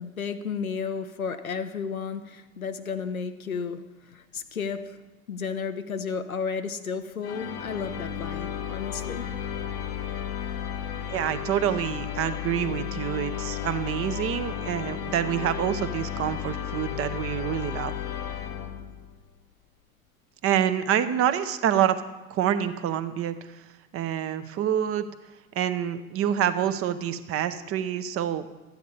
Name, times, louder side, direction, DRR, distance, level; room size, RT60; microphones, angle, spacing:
voice 1, 0.0-5.0 5.3-9.3, left 6 dB, 85° left, 0.8 m, -33 dB
sound 1, 7.2-19.2, left 9 dB, 35° left, 0.9 m, -33 dB
voice 2, 11.1-17.9 20.4-22.0 22.3-23.3 23.9-25.1 25.5-28.7, right 10 dB, 35° right, 0.8 m, -27 dB
12.5 x 9.3 x 4.2 m
figure-of-eight pair, 75°, 41 cm